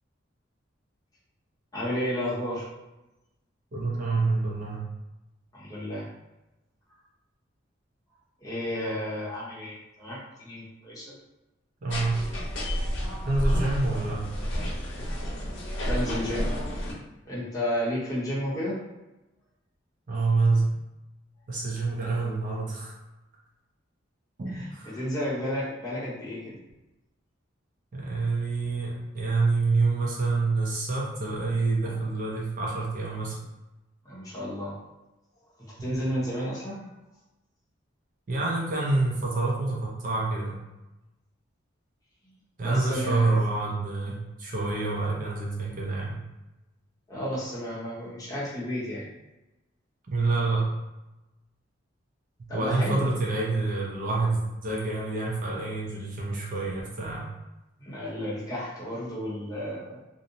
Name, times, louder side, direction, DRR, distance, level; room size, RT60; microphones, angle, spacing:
voice 1, 1.7-2.7 5.5-6.1 8.4-11.1 15.8-16.5 17.3-18.8 24.5-24.7 24.9-26.5 34.0-34.8 35.6-36.8 42.6-43.4 47.1-49.1 52.5-53.2 57.8-60.0, equal, 20° left, -8 dB, 0.8 m, -32 dB
voice 2, 3.7-4.8 11.8-12.2 13.3-14.2 20.1-20.7 21.5-22.9 24.4-25.0 27.9-33.4 35.8-35.9 38.3-40.6 42.6-46.1 50.1-50.7 52.5-57.2, right 3 dB, 45° right, -4 dB, 0.5 m, -27 dB
sound 1, 11.9-16.9, equal, 65° left, 0.7 m, -30 dB
2.6 x 2.0 x 2.7 m, 0.98 s
head